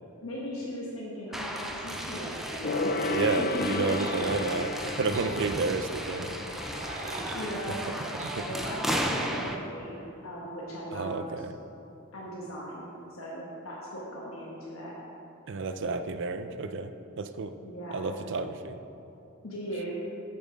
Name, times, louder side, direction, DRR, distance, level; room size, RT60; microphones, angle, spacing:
voice 1, 0.2-3.0 3.4-3.8 6.9-7.9 8.4-11.2 12.1-14.9 17.6-18.2 19.4-20.0, equal, 70° left, -4 dB, 1.3 m, -38 dB
sound 1, 1.3-9.6, equal, ahead, 0.5 m, -35 dB
Gong, 2.6-8.5 8.8-8.9, left 2 dB, 45° left, 0.4 m, -34 dB
voice 2, 3.1-6.3 7.7-7.8 8.1-8.5 10.9-11.5 15.5-16.9 17.2-17.5 17.9-18.8, right 4 dB, 60° right, 9 dB, 0.5 m, -31 dB
sound 2, 3.7-4.3 5.1-5.3 6.5-7.5 8.2-8.4, right 3 dB, 35° right, 0.9 m, -40 dB
8.4 x 6.7 x 5.2 m, 2.8 s
head